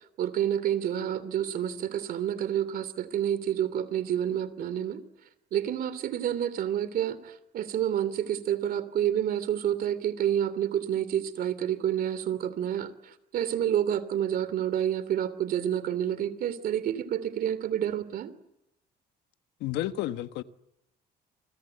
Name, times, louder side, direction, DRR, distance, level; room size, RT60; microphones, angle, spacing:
voice 1, 0.2-5.0 5.5-18.3, right 10 dB, 60° right, 15 dB, 3.1 m, -29 dB
voice 2, 19.6-20.4, left 14 dB, 85° left, 10 dB, 1.4 m, -31 dB
28.5 x 25.5 x 8.1 m, 0.84 s
cardioid pair, 110°, 17 cm